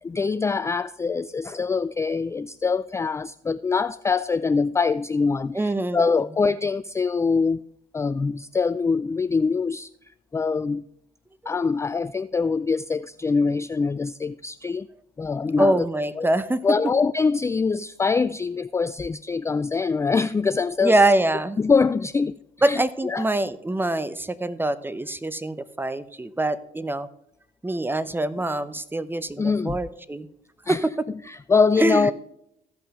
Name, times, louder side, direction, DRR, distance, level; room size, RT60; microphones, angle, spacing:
voice 1, 0.0-7.6 7.9-9.9 10.3-10.8 11.5-14.9 15.2-15.9 16.2-16.3 16.6-21.0 21.6-22.4 22.6-23.3 29.4-29.8 30.7-30.9 31.3-32.1, left 4 dB, 15° left, 14 dB, 0.3 m, -24 dB
voice 2, 5.5-6.0 11.4-11.5 15.6-16.6 20.8-21.6 22.6-27.1 27.6-30.3 30.7-30.8 31.8-32.1, right 1 dB, 10° right, 15 dB, 0.8 m, -24 dB
15.5 x 5.6 x 3.6 m, 0.77 s
supercardioid pair, 70°, 18 cm